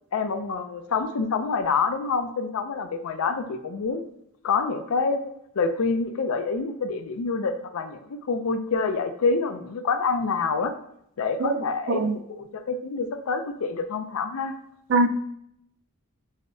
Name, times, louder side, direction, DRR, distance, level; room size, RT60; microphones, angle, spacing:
voice 1, 0.1-4.0 4.4-10.7 11.2-14.5, left 4 dB, 80° left, 0.4 m, -27 dB
voice 2, 11.4-11.6 11.9-12.2 14.9-15.1, right 2 dB, 55° right, 0.3 m, -21 dB
6.3 x 2.1 x 2.6 m
head